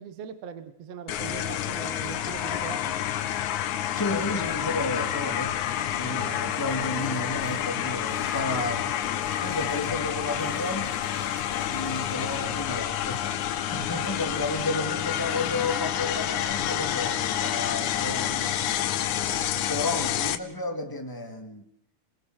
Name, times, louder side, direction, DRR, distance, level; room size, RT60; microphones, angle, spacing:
voice 1, 0.0-2.9 19.7-19.9, right 7 dB, 60° right, 2.2 m, -40 dB
sound 1, 1.1-20.4, left 11 dB, 75° left, 2.5 m, -29 dB
voice 2, 3.9-5.6 5.9-8.9 9.4-10.9 11.7-18.8 19.7-21.6, left 2 dB, 10° left, 1.8 m, -32 dB
Crumpling crinkling, 5.8-12.6, right 2 dB, 90° right, 6.6 m, -52 dB
28.5 x 20.0 x 6.4 m
omnidirectional pair, 3.6 m